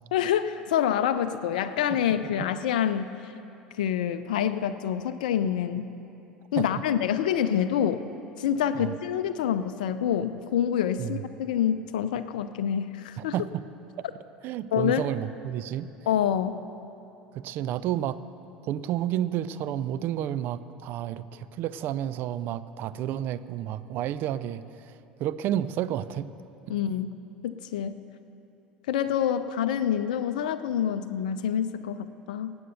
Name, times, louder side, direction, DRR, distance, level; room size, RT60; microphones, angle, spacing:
voice 1, 0.1-3.3 3.8-5.9 6.5-8.0 8.4-13.3 14.7-15.0 16.1-16.5 26.7-27.1 27.4-28.0 28.9-32.6, left 9 dB, 65° left, 11 dB, 0.5 m, -27 dB
voice 2, 13.2-13.6 14.4-15.9 17.3-18.2 18.6-26.3 26.7-26.8, right 11 dB, 45° right, 15 dB, 0.5 m, -31 dB
18.5 x 7.8 x 6.8 m, 2.8 s
figure-of-eight pair, 70°, 5 cm